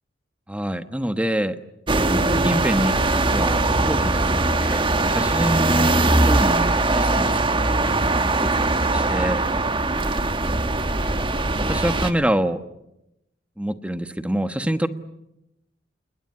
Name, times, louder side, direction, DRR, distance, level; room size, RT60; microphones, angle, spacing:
voice 1, 0.5-1.6 2.1-4.2 4.6-7.4 7.7-8.0 8.3-8.5 8.8-9.4 11.5-12.6 13.6-14.9, right 1 dB, 5° right, 9 dB, 1.2 m, -26 dB
sound 1, 1.9-12.1, right 2 dB, 25° right, 1.4 m, -21 dB
29.0 x 20.5 x 9.8 m, 0.88 s
head